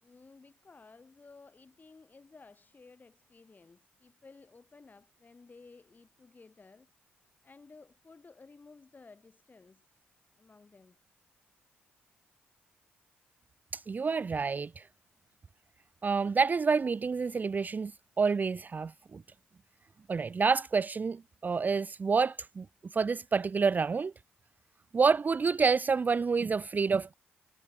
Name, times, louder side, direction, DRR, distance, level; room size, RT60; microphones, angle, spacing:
voice 1, 0.0-6.9 7.4-9.9 10.4-11.0, left 4 dB, 35° left, 4.4 m, -56 dB
voice 2, 13.7-14.8 16.0-17.9 18.2-19.2 20.1-22.6 22.9-24.1 24.9-27.1, right 5 dB, 35° right, 0.4 m, -28 dB
hypercardioid pair, 40°, 5 cm